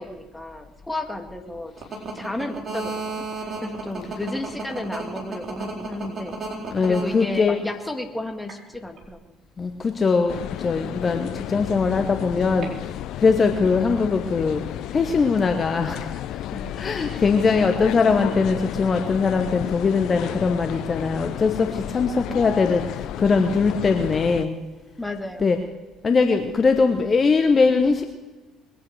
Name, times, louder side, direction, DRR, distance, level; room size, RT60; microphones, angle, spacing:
voice 1, 0.0-1.7 2.1-3.2 3.6-6.4 6.9-9.2 16.5-17.2 25.0-25.6, left 1 dB, 10° left, 5 dB, 2.0 m, -33 dB
sound 1, 1.8-7.7 8.5-9.1 12.6-12.7, right 4 dB, 35° right, 4.2 m, -32 dB
voice 2, 6.7-7.6 9.6-12.7 13.2-14.6 14.9-16.0 16.8-22.9 23.2-24.6 25.4-25.6 26.0-28.0, left 4 dB, 35° left, 5 dB, 1.2 m, -21 dB
sound 2, 10.3-24.4, left 12 dB, 55° left, 0.5 m, -32 dB
21.5 x 8.8 x 6.4 m, 1.2 s
figure-of-eight pair, 55°, 0 cm